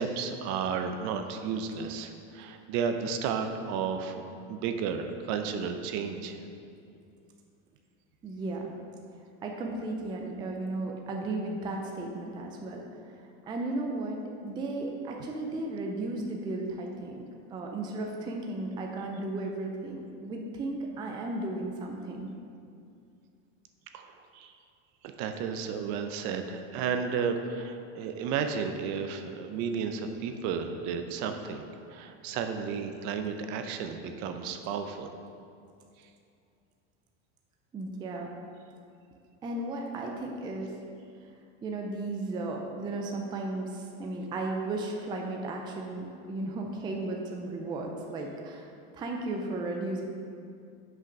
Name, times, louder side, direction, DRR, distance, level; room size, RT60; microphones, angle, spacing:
voice 1, 0.0-6.5 23.9-24.6 25.0-35.1 36.0-36.1, right 6 dB, 50° right, 7 dB, 0.6 m, -33 dB
voice 2, 8.2-8.7 9.4-13.2 13.5-17.2 17.5-22.3 37.7-38.3 39.4-40.7 41.6-50.0, right 2 dB, 15° right, 1 dB, 0.4 m, -35 dB
5.8 x 5.8 x 5.2 m, 2.4 s
supercardioid pair, 150°, 36 cm